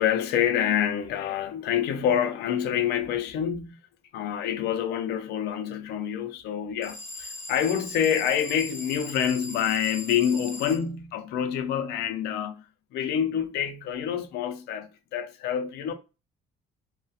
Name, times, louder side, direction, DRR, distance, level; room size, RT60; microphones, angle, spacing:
voice 1, 0.0-3.8 4.1-12.6 12.9-15.9, left 9 dB, 75° left, 0.4 m, -27 dB
sound 1, 6.8-10.8, left 2 dB, 15° left, 0.8 m, -40 dB
2.7 x 2.1 x 2.2 m
cardioid pair, 110°, 17 cm